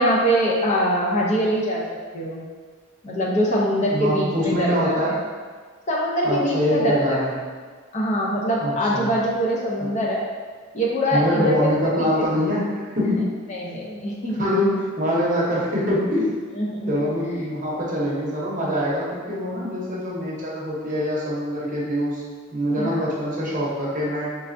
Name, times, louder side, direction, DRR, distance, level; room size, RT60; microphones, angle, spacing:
voice 1, 0.0-1.8 2.1-2.4 3.0-5.0 5.9-7.2 7.9-10.2 10.7-11.5 12.0-12.3 13.5-14.5 16.6-16.9 22.8-23.0, equal, 35° left, -3 dB, 0.5 m, -23 dB
voice 2, 3.9-5.2 6.2-7.3 8.6-9.1 9.8-9.9 11.1-13.3 14.4-16.3 16.9-22.2 22.5-24.3, equal, 40° right, -5 dB, 0.8 m, -24 dB
3.4 x 3.2 x 2.5 m, 1.5 s
head